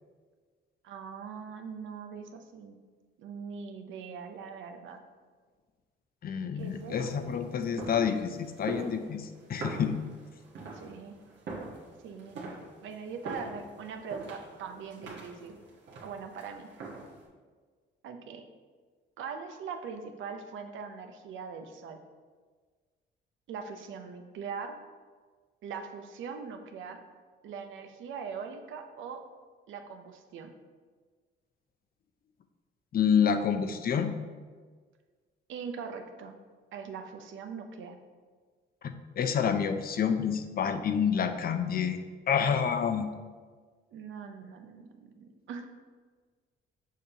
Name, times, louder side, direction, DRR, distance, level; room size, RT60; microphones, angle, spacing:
voice 1, 0.8-2.8 3.2-5.0 6.5-7.2 10.7-11.2 12.0-12.4 12.8-15.6 16.0-16.7 18.0-18.4 19.2-22.0 23.5-24.8 25.6-27.0 27.4-29.2 29.7-30.5 35.5-36.3 36.7-38.0 43.9-45.7, right 6 dB, 80° right, 5 dB, 0.7 m, -41 dB
voice 2, 6.2-10.0 32.9-34.1 38.8-42.0 42.3-43.1, left 7 dB, 50° left, 8 dB, 0.5 m, -28 dB
sound 1, 6.6-17.3, right 3 dB, 60° right, 1.4 m, -44 dB
6.5 x 5.0 x 2.8 m, 1.5 s
cardioid pair, 90°, 20 cm